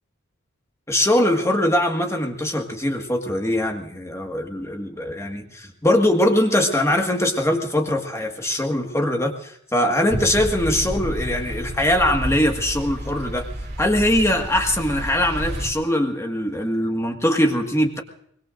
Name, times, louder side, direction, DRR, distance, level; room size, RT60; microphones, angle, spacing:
voice 1, 0.9-13.5 13.8-18.0, left 1 dB, 15° left, 3 dB, 1.7 m, -22 dB
sound 1, 10.1-15.7, equal, 55° right, 2.6 m, -30 dB
24.5 x 21.5 x 2.6 m, 0.68 s
head